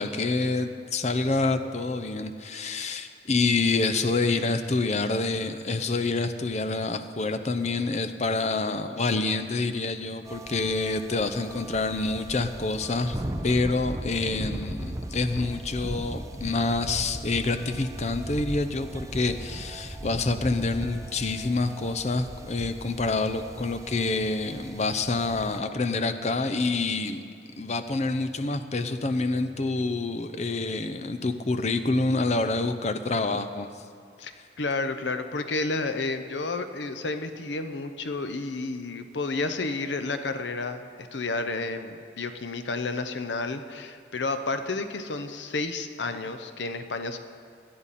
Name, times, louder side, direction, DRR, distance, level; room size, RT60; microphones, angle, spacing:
voice 1, 0.0-27.2 27.6-33.7, left 3 dB, 40° left, 8 dB, 0.6 m, -27 dB
sound 1, 10.2-25.6, right 1 dB, 15° right, 0.6 m, -38 dB
voice 2, 34.6-47.2, left 3 dB, 85° left, 9 dB, 0.8 m, -31 dB
17.5 x 11.5 x 4.2 m, 2.3 s
head